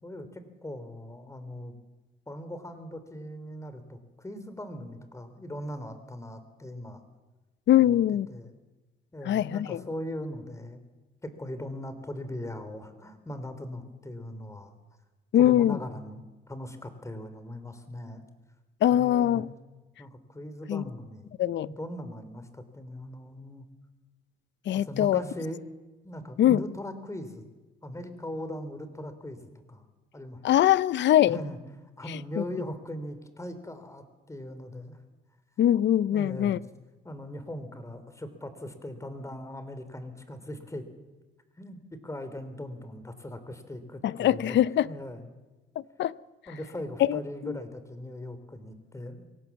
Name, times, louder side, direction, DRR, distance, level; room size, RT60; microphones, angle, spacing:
voice 1, 0.0-1.8 2.3-7.0 7.8-8.0 8.3-8.5 9.1-10.8 11.2-14.7 15.4-18.2 18.9-19.4 20.0-21.3 21.7-23.7 24.7-25.6 26.0-27.4 27.8-29.4 29.7-29.9 30.1-30.4 31.3-31.6 32.0-35.0 36.1-36.6 37.0-40.8 41.6-45.3 46.5-49.3, left 1 dB, 15° left, 3.4 m, -39 dB
voice 2, 7.7-8.3 9.3-9.8 15.3-15.8 18.8-19.4 20.7-20.8 21.4-21.7 24.7-25.2 26.4-26.6 30.4-31.4 32.1-32.4 35.6-36.6 44.0-44.9 46.0-46.1 47.0-47.5, left 11 dB, 65° left, 0.7 m, -22 dB
23.5 x 18.0 x 7.1 m
cardioid pair, 90°, 20 cm